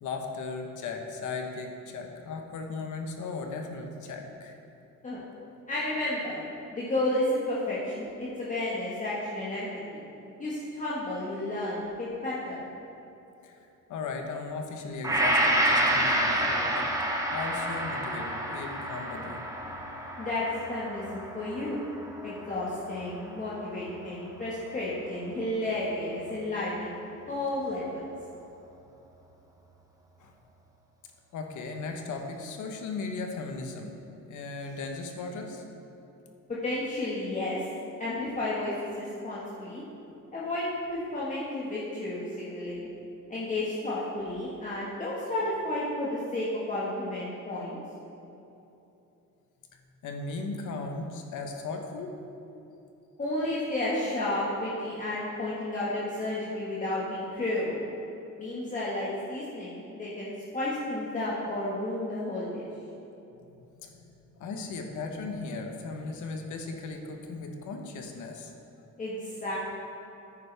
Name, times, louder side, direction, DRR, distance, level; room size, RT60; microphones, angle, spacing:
voice 1, 0.0-4.5 13.4-16.9 17.3-19.4 30.2-30.3 31.3-35.6 50.0-52.2 63.8-64.0 64.4-68.5, left 3 dB, 70° left, 3 dB, 1.1 m, -37 dB
voice 2, 5.7-6.4 6.7-9.7 10.4-12.6 20.2-21.8 22.2-26.9 27.3-28.0 36.5-37.7 38.0-39.8 40.3-42.9 43.3-47.8 53.2-57.8 58.4-62.7 69.0-69.6, left 1 dB, 25° left, -8 dB, 1.5 m, -32 dB
Gong, 15.0-23.4 23.8-23.9, right 1 dB, 10° right, 1.0 m, -29 dB
10.0 x 9.4 x 3.4 m, 2.9 s
cardioid pair, 130°, 31 cm